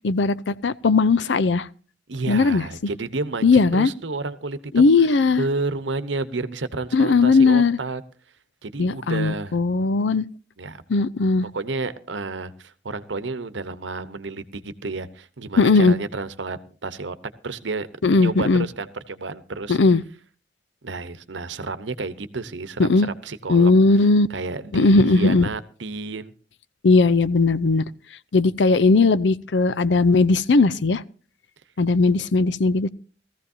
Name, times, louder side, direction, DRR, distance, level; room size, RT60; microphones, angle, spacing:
voice 1, 0.0-1.7 2.3-2.6 3.4-3.9 4.7-5.4 6.9-7.8 8.8-10.3 10.9-11.5 15.6-15.9 18.0-18.7 19.7-20.0 22.8-23.1 23.5-24.3 24.7-25.5 26.8-27.8 28.3-31.0 31.8-32.9, left 3 dB, 70° left, 0.6 m, -18 dB
voice 2, 2.1-8.0 8.6-9.6 10.6-10.8 11.4-17.2 17.4-19.8 20.8-26.3, right 3 dB, 80° right, 0.9 m, -31 dB
18.5 x 14.5 x 2.7 m
head